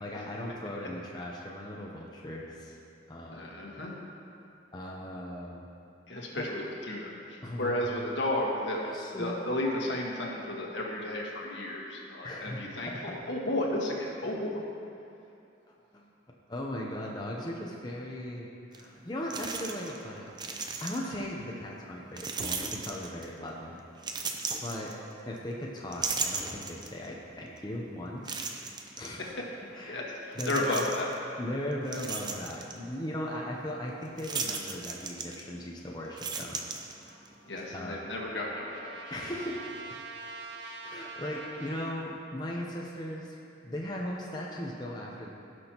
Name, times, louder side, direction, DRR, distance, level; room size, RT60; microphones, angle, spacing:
voice 1, 0.0-2.8 3.1-3.5 4.7-5.7 6.4-6.5 7.4-7.7 8.8-9.4 12.2-12.6 15.7-16.0 16.5-20.3 20.8-23.9 24.6-24.9 25.2-28.5 29.0-29.3 29.7-30.0 30.4-30.6 31.4-36.6 37.7-38.0 39.1-39.6 39.8-40.0 40.8-43.4 43.6-45.3, left 1 dB, 25° left, -3 dB, 0.8 m, -38 dB
voice 2, 3.3-3.9 6.1-8.8 9.2-14.6 29.4-29.5 29.9-31.1 37.5-38.9, left 1 dB, 80° left, -2 dB, 1.5 m, -33 dB
sound 1, 18.7-18.8 19.3-20.0 20.3-21.2 22.2-23.4 24.0-25.4 25.8-27.1 27.6-27.7 28.3-29.1 30.3-31.2 31.6-32.8 34.2-35.7 36.0-37.3, right 4 dB, 25° right, 0.5 m, -36 dB
Trumpet, 37.0-42.2, right 3 dB, 70° right, 0.6 m, -45 dB
16.5 x 6.2 x 3.0 m, 2.6 s
head